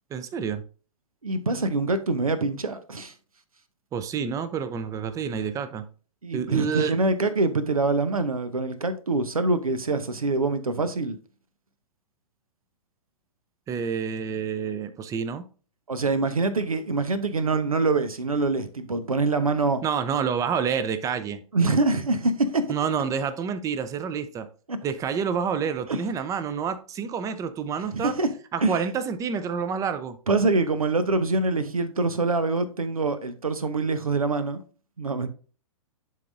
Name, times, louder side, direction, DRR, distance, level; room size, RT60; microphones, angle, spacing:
voice 1, 0.1-0.6 3.9-5.9 6.3-6.9 13.7-15.4 19.8-21.4 22.7-24.5 24.8-28.1 28.5-30.2, right 7 dB, 20° right, 0.6 m, -28 dB
voice 2, 1.2-3.1 6.2-11.2 15.9-19.8 21.5-22.6 24.7-24.8 25.9-26.0 27.9-28.3 28.6-28.8 30.3-34.6 35.0-35.3, right 3 dB, 85° right, 0.8 m, -25 dB
10.5 x 3.8 x 2.6 m
figure-of-eight pair, 110°, 18 cm